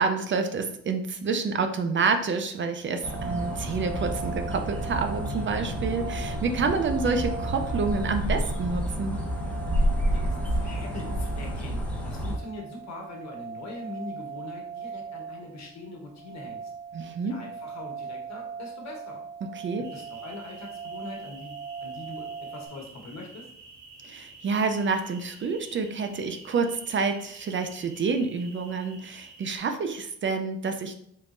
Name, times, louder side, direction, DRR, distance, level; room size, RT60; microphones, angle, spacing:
voice 1, 0.0-9.2 16.9-17.4 19.6-19.9 24.0-31.0, right 4 dB, 40° right, 7 dB, 0.5 m, -28 dB
sound 1, 3.0-12.4, equal, 5° left, 1.0 m, -30 dB
sound 2, 3.0-22.7, right 6 dB, 20° right, 0.8 m, -40 dB
voice 2, 10.1-16.7 17.2-19.2 19.8-23.5, left 2 dB, 65° left, 1 dB, 1.2 m, -42 dB
sound 3, 19.8-29.6, right 3 dB, 85° right, 1.4 m, -49 dB
4.0 x 3.6 x 2.5 m, 0.70 s
cardioid pair, 90°, 30 cm